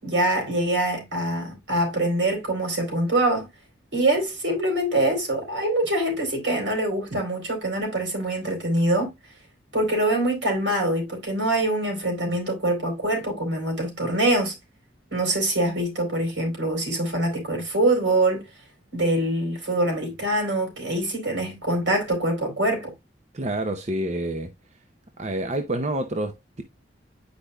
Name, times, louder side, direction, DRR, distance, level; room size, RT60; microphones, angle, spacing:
voice 1, 0.0-3.5 3.9-9.1 9.7-14.5 15.1-18.4 18.9-22.9, right 1 dB, 80° right, 4.2 m, -24 dB
voice 2, 23.3-24.5 25.2-26.6, right 1 dB, 35° right, 0.7 m, -28 dB
10.0 x 5.1 x 2.2 m
head